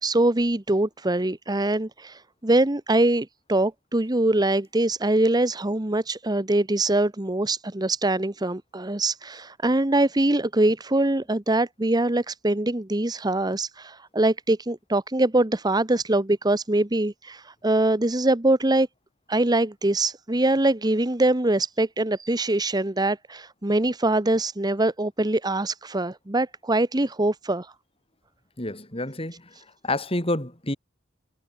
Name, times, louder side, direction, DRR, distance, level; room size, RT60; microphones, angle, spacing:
voice 1, 0.0-18.9 19.3-27.7, right 2 dB, 20° right, 1.0 m, -23 dB
voice 2, 28.6-29.5 29.8-30.8, left 2 dB, 30° left, 5.5 m, -28 dB
head